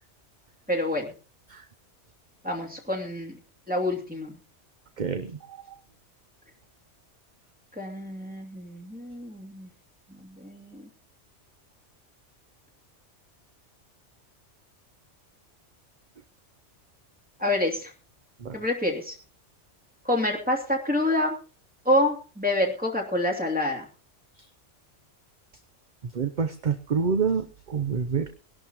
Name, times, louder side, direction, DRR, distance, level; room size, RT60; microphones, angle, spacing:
voice 1, 0.7-1.1 2.4-3.3 3.7-4.3 7.8-9.7 10.1-10.9 17.4-17.9 18.5-19.2 20.0-21.4 21.8-23.9, left 1 dB, 5° right, 1 dB, 2.6 m, -27 dB
voice 2, 26.2-28.3, right 6 dB, 45° right, 8 dB, 0.8 m, -26 dB
21.0 x 11.5 x 3.0 m, 0.36 s
omnidirectional pair, 1.2 m